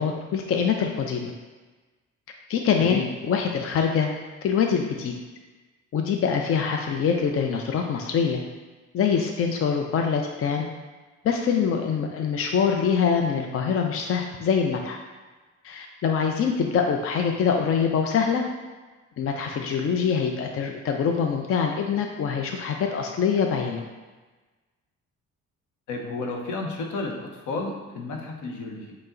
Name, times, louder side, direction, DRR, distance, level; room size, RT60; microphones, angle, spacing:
voice 1, 0.0-1.3 2.5-4.1 4.4-5.1 5.9-8.4 8.9-10.7 11.2-15.0 15.6-18.5 19.2-23.8, left 6 dB, 50° left, 3 dB, 0.5 m, -24 dB
voice 2, 2.8-3.1 25.9-29.0, left 3 dB, 75° left, 1 dB, 0.7 m, -32 dB
5.4 x 2.1 x 3.7 m, 1.3 s
cardioid pair, 90°, 30 cm